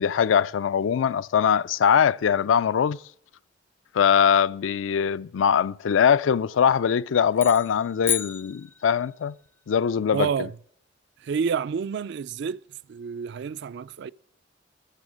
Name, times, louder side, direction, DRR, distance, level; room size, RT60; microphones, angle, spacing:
voice 1, 0.0-3.0 3.9-9.3 9.7-10.3, left 7 dB, 85° left, 0.4 m, -22 dB
sound 1, 7.3-9.3, left 7 dB, 10° left, 0.3 m, -32 dB
voice 2, 10.1-10.5 11.2-12.6 12.9-14.1, right 6 dB, 65° right, 0.3 m, -29 dB
13.5 x 7.0 x 6.2 m
head